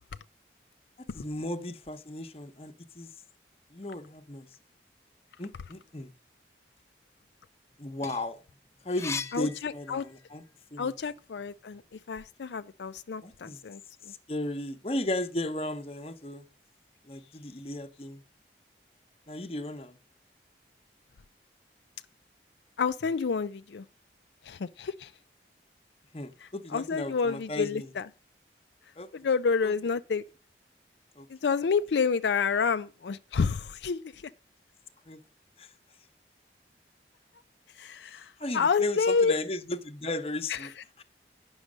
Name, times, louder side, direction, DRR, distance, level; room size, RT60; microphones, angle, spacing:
voice 1, 1.1-3.1 3.7-4.5 5.4-6.1 7.8-8.4 8.8-10.4 10.7-10.9 13.2-13.6 14.1-16.5 17.1-18.2 19.3-20.0 26.1-27.9 29.0-29.3 29.6-29.7 31.2-31.3 35.1-35.2 35.6-35.7 38.4-40.7 41.0-41.1, left 1 dB, 35° left, 0.9 m, -35 dB
sound 1, 7.7-10.4 10.9-12.3, left 5 dB, 15° left, 0.5 m, -40 dB
voice 2, 9.3-10.1 10.8-11.8 12.1-13.8 14.1-14.2 22.8-23.8 24.4-25.1 26.4-28.1 29.1-30.2 31.3-34.2 37.8-39.3 40.5-40.7, left 5 dB, 85° left, 0.4 m, -29 dB
9.5 x 6.3 x 6.3 m
head